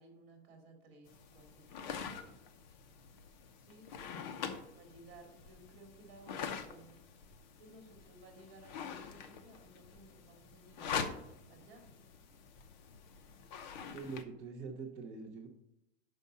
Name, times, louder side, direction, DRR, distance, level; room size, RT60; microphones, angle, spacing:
voice 1, 0.0-2.3 3.6-3.9 4.8-6.9 7.6-11.2 11.5-11.9, right 1 dB, 35° right, 3 dB, 2.3 m, -58 dB
sound 1, 1.1-14.2, left 6 dB, 40° left, 0.7 m, -45 dB
voice 2, 13.9-15.5, right 4 dB, 10° right, -4 dB, 0.5 m, -44 dB
6.4 x 5.4 x 6.6 m, 0.81 s
supercardioid pair, 170°, 34 cm